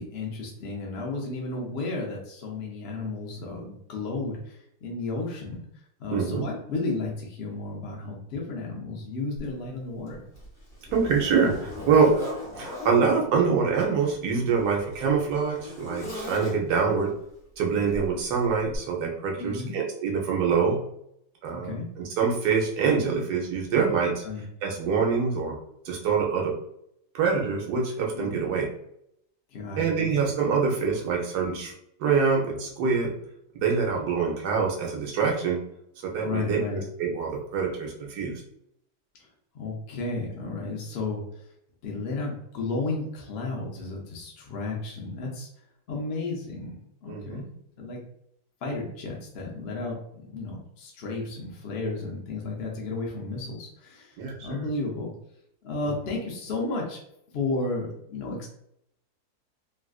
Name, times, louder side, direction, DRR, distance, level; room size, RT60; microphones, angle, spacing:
voice 1, 0.0-5.6 6.0-10.2 19.4-19.8 21.5-21.9 24.2-24.4 28.1-28.4 29.5-30.1 36.2-36.8 39.2-39.3 39.5-41.5 41.8-45.5 45.9-46.8 47.0-47.4 47.8-48.0 48.6-55.1 55.6-57.0 57.3-58.5, left 3 dB, 55° left, -1 dB, 0.7 m, -33 dB
voice 2, 6.1-6.4 10.9-12.1 12.6-17.1 17.6-20.8 21.4-21.8 22.2-24.2 24.6-25.6 25.8-26.5 27.1-28.7 29.8-31.7 32.0-33.1 33.5-35.6 36.0-38.3 47.1-47.5 54.2-54.6 55.8-55.9, right 5 dB, 75° right, 0 dB, 1.3 m, -25 dB
Zipper (clothing), 9.4-9.5 10.1-13.0 14.0-16.9 17.9-18.1 18.7-18.8, left 1 dB, 25° left, 1.4 m, -38 dB
3.4 x 2.4 x 2.3 m, 0.73 s
omnidirectional pair, 1.8 m